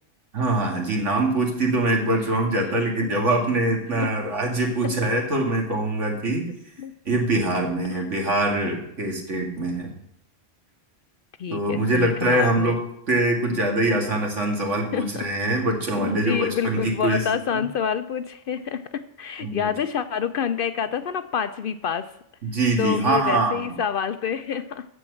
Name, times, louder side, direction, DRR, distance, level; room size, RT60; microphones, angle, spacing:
voice 1, 0.3-6.5 7.1-9.9 11.5-12.8 13.1-17.3 17.5-17.6 19.4-19.7 22.4-23.6, right 2 dB, 80° right, 1 dB, 2.3 m, -23 dB
voice 2, 11.4-12.8 13.5-13.6 14.9-15.3 16.0-22.1 22.8-24.9, left 7 dB, 60° left, 11 dB, 0.6 m, -28 dB
13.5 x 4.6 x 7.7 m, 0.76 s
omnidirectional pair, 1.2 m